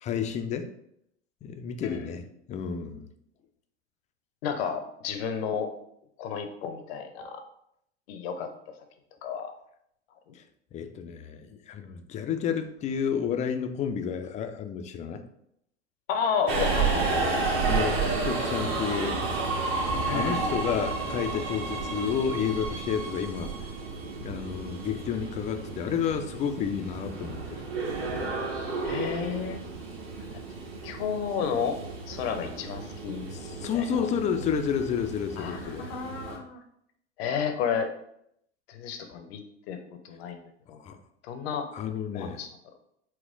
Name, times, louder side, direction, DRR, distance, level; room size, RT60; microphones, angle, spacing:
voice 1, 0.0-0.7 1.4-2.2 2.5-3.1 10.3-10.4 10.7-15.2 17.7-19.2 20.1-23.5 24.2-27.6 33.3-35.9 40.8-41.0 41.7-42.4, left 7 dB, 20° left, 8 dB, 0.4 m, -31 dB
voice 2, 4.4-5.7 6.2-7.4 8.1-8.5 8.8-8.9 9.2-9.5 10.3-10.4 16.1-17.4 20.1-20.5 28.8-29.6 30.3-30.4 30.8-31.8 32.1-33.2 33.7-34.1 35.4-36.6 37.2-37.9 38.7-39.4 39.7-39.8 40.0-40.4 40.7-40.8 41.2-41.7 42.1-42.5, left 6 dB, 60° left, 7 dB, 0.7 m, -31 dB
Subway metro underground, 16.5-36.4, right 4 dB, 40° right, 1.1 m, -32 dB
4.2 x 2.1 x 3.7 m, 0.73 s
hypercardioid pair, 90°, 34 cm